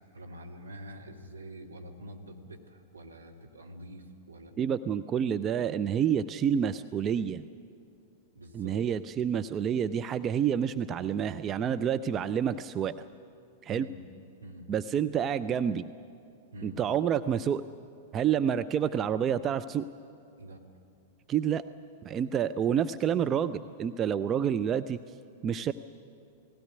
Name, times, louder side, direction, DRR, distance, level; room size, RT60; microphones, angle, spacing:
voice 1, 0.1-4.5 8.4-8.8 13.7-14.0 14.4-14.7 16.5-16.8 20.4-20.6, equal, 80° right, 0 dB, 2.2 m, -46 dB
voice 2, 4.6-7.5 8.5-12.9 13.6-13.9 14.7-15.9 16.6-17.6 18.1-19.9 21.3-21.6 22.0-25.0 25.4-25.7, right 8 dB, 25° right, 12 dB, 0.4 m, -28 dB
18.5 x 16.5 x 9.5 m, 2.5 s
figure-of-eight pair, 95°, 0 cm